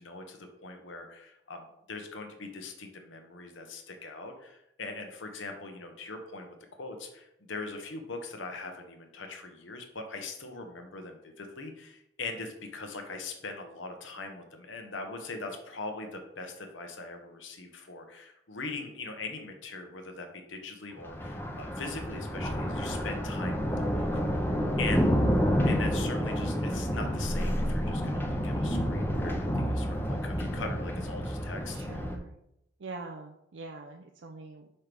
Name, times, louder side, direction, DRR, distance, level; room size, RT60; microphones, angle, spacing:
voice 1, 0.0-23.7 23.9-24.1 24.8-25.1 25.7-32.0, left 3 dB, 80° left, 4 dB, 1.1 m, -41 dB
Thunder, 21.0-32.2, equal, 10° left, 0.6 m, -29 dB
voice 2, 31.7-32.3 32.8-34.7, right 3 dB, 75° right, 3 dB, 0.5 m, -43 dB
6.0 x 5.6 x 3.4 m, 0.80 s
head